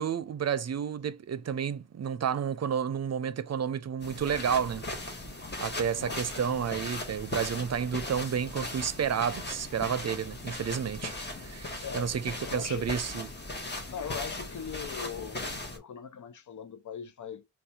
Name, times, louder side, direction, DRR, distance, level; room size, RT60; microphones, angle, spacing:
voice 1, 0.0-4.8 5.6-11.1 11.4-13.3, right 7 dB, 60° right, 0.5 m, -31 dB
sound 1, 4.0-15.8, left 2 dB, 35° left, 1.0 m, -38 dB
voice 2, 11.8-12.2 12.4-13.0 13.9-17.5, left 7 dB, 90° left, 0.5 m, -40 dB
2.8 x 2.3 x 4.0 m
cardioid pair, 50°, 29 cm